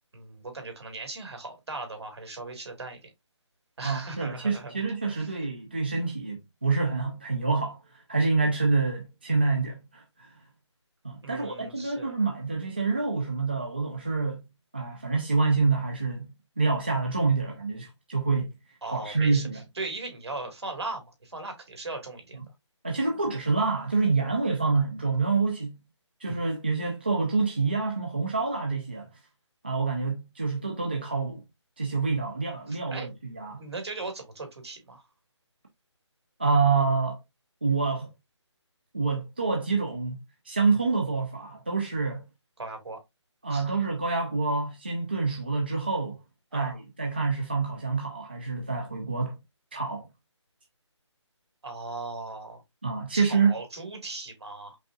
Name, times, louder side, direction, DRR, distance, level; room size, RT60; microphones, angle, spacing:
voice 1, 0.1-3.1 3.8-4.8 5.1-5.4 11.2-12.1 18.8-22.5 32.7-33.1 33.6-35.0 42.6-43.0 43.5-43.8 46.5-46.8 51.6-52.6 53.1-54.8, right 3 dB, 60° right, 2.3 m, -38 dB
voice 2, 3.8-10.3 11.0-14.4 14.7-18.5 18.9-19.6 22.8-25.8 26.2-29.1 29.6-31.4 31.8-33.6 36.4-37.2 37.6-38.1 38.9-40.2 40.5-42.2 43.4-46.2 46.5-49.4 49.7-50.1 52.8-53.5, right 4 dB, 20° right, 0.4 m, -27 dB
5.2 x 3.7 x 2.3 m
hypercardioid pair, 175°, 16 cm